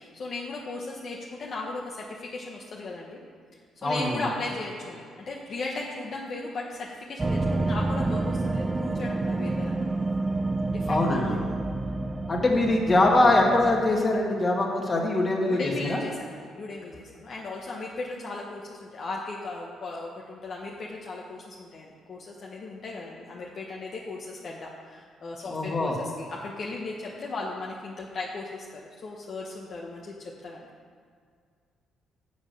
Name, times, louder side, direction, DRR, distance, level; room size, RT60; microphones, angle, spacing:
voice 1, 0.0-3.2 3.8-9.9 10.7-11.6 15.5-30.7, left 3 dB, 50° left, -3 dB, 1.1 m, -37 dB
voice 2, 3.8-4.2 10.9-11.4 12.3-16.0 25.5-26.0, left 2 dB, 25° left, 0 dB, 1.8 m, -23 dB
sound 1, 7.2-13.9, right 2 dB, 20° right, 0.5 m, -29 dB
7.5 x 7.0 x 6.7 m, 2.1 s
cardioid pair, 100°, 0 cm